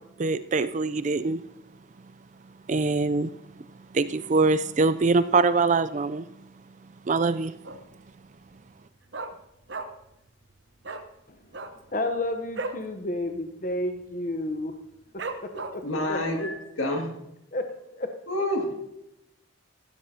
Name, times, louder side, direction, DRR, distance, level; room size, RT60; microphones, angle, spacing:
voice 1, 0.2-1.4 2.7-3.3 3.9-6.3 7.1-7.5, right 3 dB, 35° right, 13 dB, 0.4 m, -23 dB
Dog, 7.6-8.1 8.4-8.5 8.7-10.2 10.4-10.5 10.8-11.1 11.4-12.9 13.2-13.4 13.6-14.1 14.5-14.6 15.2-16.0 16.5-16.6, right 3 dB, 60° right, 0.9 m, -36 dB
voice 2, 11.9-14.7 15.1-15.8 16.1-16.5 17.5-17.7 18.0-18.1, left 1 dB, 40° left, 6 dB, 0.8 m, -31 dB
voice 3, 15.5-17.1 18.3-18.8, left 1 dB, 85° left, 2 dB, 2.2 m, -29 dB
15.0 x 12.5 x 2.8 m, 0.84 s
head